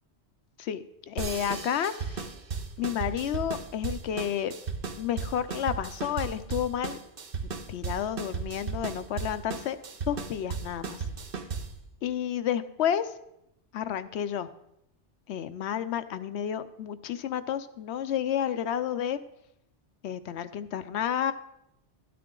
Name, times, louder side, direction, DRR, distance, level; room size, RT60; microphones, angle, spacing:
voice 1, 0.6-2.2 2.8-4.5 5.0-7.0 7.7-9.8 10.1-11.0 12.0-13.1 13.7-14.5 15.3-19.2 20.0-21.3, left 9 dB, 75° left, 12 dB, 0.8 m, -31 dB
sound 1, 1.2-11.8, right 5 dB, 55° right, 1.0 m, -36 dB
12.5 x 9.4 x 3.8 m, 0.80 s
omnidirectional pair, 1.2 m